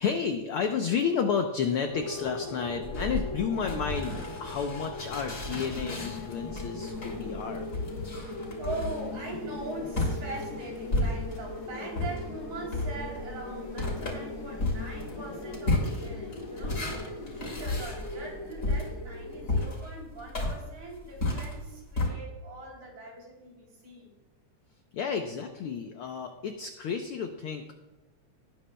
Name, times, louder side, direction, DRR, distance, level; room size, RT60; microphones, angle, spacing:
voice 1, 0.0-7.7 24.9-27.7, left 6 dB, 85° left, 5 dB, 1.2 m, -31 dB
sound 1, 1.9-19.6, left 1 dB, 10° left, 2.2 m, -40 dB
sound 2, 2.8-11.6 11.9-22.1, left 2 dB, 30° left, 3.2 m, -33 dB
sound 3, 5.7-17.5, left 6 dB, 55° left, 1.7 m, -45 dB
voice 2, 8.2-24.1, right 2 dB, 75° right, -2 dB, 4.5 m, -42 dB
19.0 x 9.2 x 2.2 m, 1.1 s
omnidirectional pair, 3.3 m